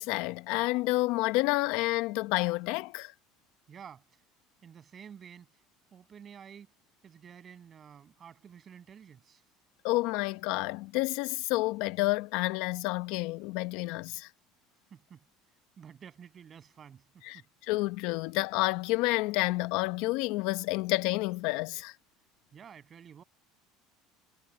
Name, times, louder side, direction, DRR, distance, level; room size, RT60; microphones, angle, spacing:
voice 1, 0.0-3.1 9.8-14.3 17.2-17.4 17.7-21.9, left 21 dB, 70° left, 1.0 m, -29 dB
voice 2, 3.7-4.0 4.6-5.5 5.9-6.7 7.0-9.4 14.9-15.2 15.8-17.5 22.5-23.2, right 8 dB, 35° right, 7.5 m, -50 dB
supercardioid pair, 100°, 0 cm